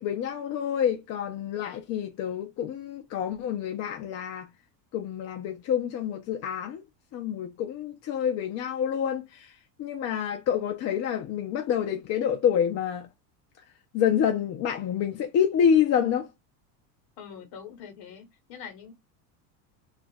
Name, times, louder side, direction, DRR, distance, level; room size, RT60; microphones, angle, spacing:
voice 1, 0.0-4.5 4.9-6.8 7.1-9.5 9.8-13.1 13.9-16.3, left 8 dB, 35° left, 0.5 m, -27 dB
voice 2, 17.2-18.9, left 7 dB, 50° left, 1.2 m, -44 dB
2.4 x 2.3 x 4.0 m
supercardioid pair, 125°, 48 cm